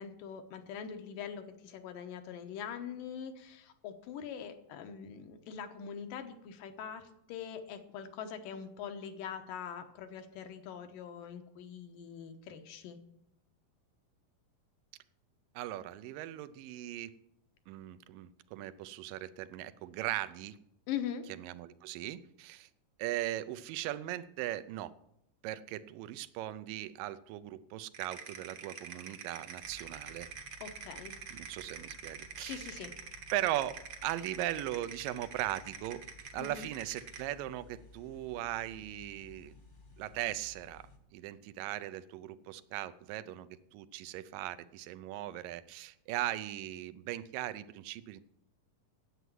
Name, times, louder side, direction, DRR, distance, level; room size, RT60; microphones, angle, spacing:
voice 1, 0.0-13.0 20.9-21.2 30.6-31.1 32.4-32.9 36.4-36.7, left 8 dB, 85° left, 7 dB, 2.7 m, -43 dB
voice 2, 15.6-17.1 17.7-20.6 21.4-22.7 23.0-24.9 25.4-30.3 31.3-32.7 33.3-36.0 36.3-39.5 40.0-40.8 41.1-48.2, right 14 dB, 85° right, 14 dB, 2.3 m, -39 dB
sound 1, 27.9-37.3, right 7 dB, 60° right, 1.3 m, -46 dB
sound 2, 29.6-41.0, left 4 dB, 30° left, 0.8 m, -57 dB
9.8 x 8.0 x 9.2 m, 0.78 s
omnidirectional pair, 3.9 m